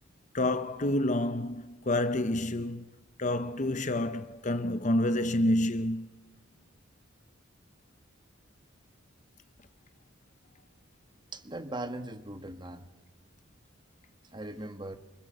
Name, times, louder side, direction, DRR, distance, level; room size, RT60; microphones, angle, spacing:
voice 1, 0.3-2.9 3.2-6.1, left 1 dB, 35° left, 0.9 m, -28 dB
voice 2, 11.3-12.9 14.3-15.0, right 1 dB, 20° right, 1.5 m, -39 dB
29.0 x 25.0 x 8.0 m
head